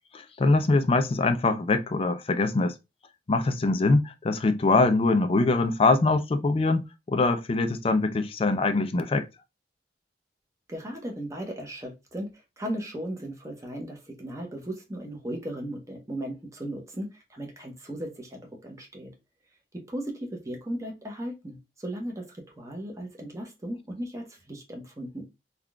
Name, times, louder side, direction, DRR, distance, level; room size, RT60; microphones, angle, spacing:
voice 1, 0.1-2.7 3.3-9.3, left 3 dB, 35° left, 0.4 m, -23 dB
voice 2, 10.7-12.3 12.6-19.1 19.7-25.2, right 1 dB, 20° right, 0.8 m, -36 dB
3.6 x 2.4 x 2.2 m
head